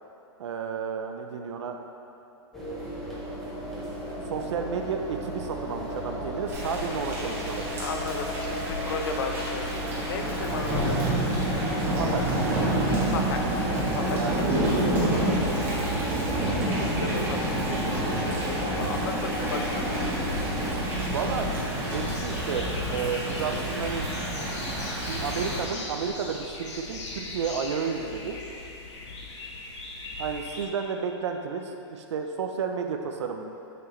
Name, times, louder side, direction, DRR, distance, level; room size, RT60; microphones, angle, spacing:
voice 1, 0.4-1.8 4.3-7.7 12.0-12.3 14.2-14.5 21.1-21.6 21.9-24.1 24.7-28.4 30.2-33.4, right 6 dB, 75° right, 4 dB, 0.6 m, -32 dB
sound 1, 2.5-20.8, equal, ahead, 0.9 m, -34 dB
Thunder / Rain, 6.5-25.6, right 1 dB, 15° right, 1.4 m, -29 dB
voice 2, 7.8-11.0 13.1-13.6 13.9-14.7 16.4-19.9, left 5 dB, 60° left, 5 dB, 0.7 m, -35 dB
sound 2, 21.9-30.7, left 2 dB, 80° left, 1.1 m, -39 dB
9.4 x 6.0 x 3.1 m, 3.0 s
supercardioid pair, 170°, 15 cm